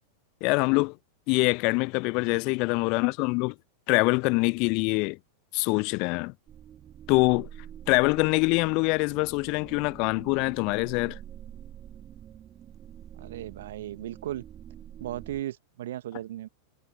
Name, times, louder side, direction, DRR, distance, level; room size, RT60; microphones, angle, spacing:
voice 1, 0.4-1.0 1.3-3.5 3.9-5.2 5.5-6.3 7.1-7.5 7.9-11.2, left 29 dB, 45° left, 0.5 m, -24 dB
sound 1, 6.5-15.4, right 10 dB, 30° right, 3.1 m, -46 dB
voice 2, 13.1-14.4 15.0-16.5, right 13 dB, 60° right, 1.8 m, -36 dB
figure-of-eight pair, 90°, 0 cm